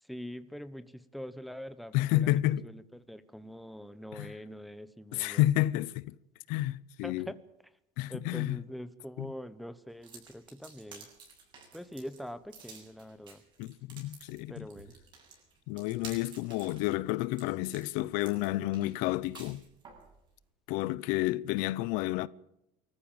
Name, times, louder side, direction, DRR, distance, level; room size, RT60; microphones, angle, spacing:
voice 1, 0.0-5.6 7.0-7.4 8.1-11.1 11.7-13.4 14.5-14.9, equal, ahead, 0.9 m, -44 dB
voice 2, 1.9-2.6 4.1-4.3 5.1-6.2 6.5-7.3 8.0-8.6 9.2-9.3 13.6-14.7 15.7-19.6 20.7-22.3, left 16 dB, 80° left, 0.8 m, -30 dB
sound 1, 10.0-20.1, right 4 dB, 35° right, 7.9 m, -52 dB
24.0 x 14.5 x 8.9 m
cardioid pair, 165°, 14 cm